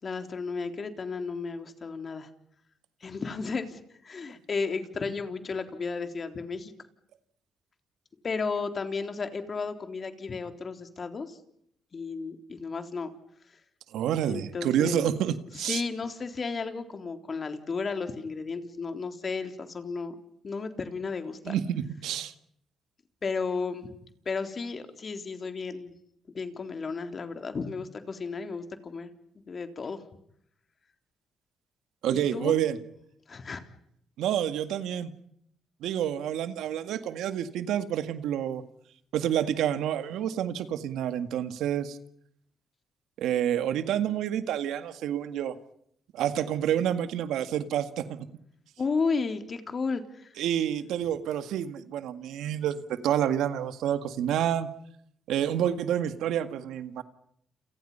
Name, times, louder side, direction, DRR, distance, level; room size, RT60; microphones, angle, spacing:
voice 1, 0.0-2.3 3.0-6.7 8.2-11.4 11.9-13.1 14.3-15.2 15.6-20.2 20.4-21.6 23.2-23.9 24.3-25.9 26.3-29.1 29.5-30.0 32.1-32.6 33.3-33.6 48.8-50.3, left 4 dB, 45° left, 7 dB, 3.8 m, -33 dB
voice 2, 13.9-15.8 21.4-22.3 32.0-32.8 34.2-35.1 35.8-38.6 39.1-42.0 43.2-45.6 46.1-48.3 50.4-54.7 55.3-57.0, right 10 dB, 80° right, 10 dB, 1.9 m, -28 dB
30.0 x 29.0 x 5.7 m, 0.71 s
supercardioid pair, 65°, 0 cm